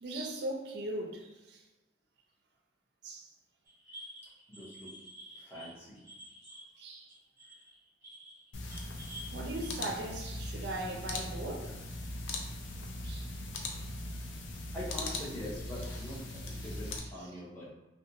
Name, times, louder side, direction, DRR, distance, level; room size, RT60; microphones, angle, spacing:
voice 1, 0.0-1.6 3.0-3.3 6.8-7.1 9.3-11.8 13.0-13.3 16.3-16.8 17.2-17.3, right 1 dB, 55° right, 0.4 m, -39 dB
sound 1, 3.6-9.7, equal, 15° right, 1.0 m, -50 dB
voice 2, 4.5-4.9 5.3-6.0 14.7-17.7, left 1 dB, 10° left, 0.7 m, -43 dB
sound 2, 8.5-17.0, left 2 dB, 65° left, 0.4 m, -40 dB
2.4 x 2.2 x 2.8 m
head